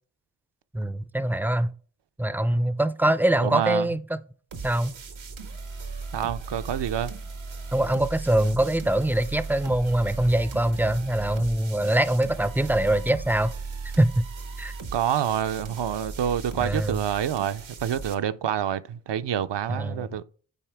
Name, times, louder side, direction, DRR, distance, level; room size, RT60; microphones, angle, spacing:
voice 1, 0.7-1.7 2.2-4.2 4.6-5.0 7.7-13.5 14.0-14.3 14.6-14.7 16.6-17.0 19.7-20.2, right 1 dB, 5° right, 0.4 m, -23 dB
voice 2, 3.4-3.9 6.1-7.1 14.9-20.2, right 9 dB, 65° right, 0.5 m, -27 dB
sound 1, 4.5-18.1, right 4 dB, 85° right, 1.0 m, -37 dB
9.0 x 4.3 x 3.4 m
cardioid pair, 50°, 45 cm